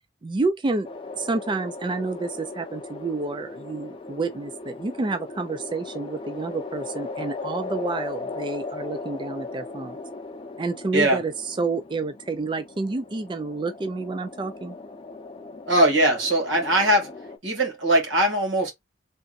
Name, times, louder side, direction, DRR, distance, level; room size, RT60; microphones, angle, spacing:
voice 1, 0.2-0.9 1.1-10.0 10.6-14.8, right 3 dB, 25° right, 0.4 m, -29 dB
sound 1, 0.8-17.4, left 3 dB, 30° left, 0.8 m, -38 dB
voice 2, 15.7-17.1 17.4-18.7, right 1 dB, 80° right, 2.2 m, -20 dB
3.9 x 3.4 x 2.5 m
head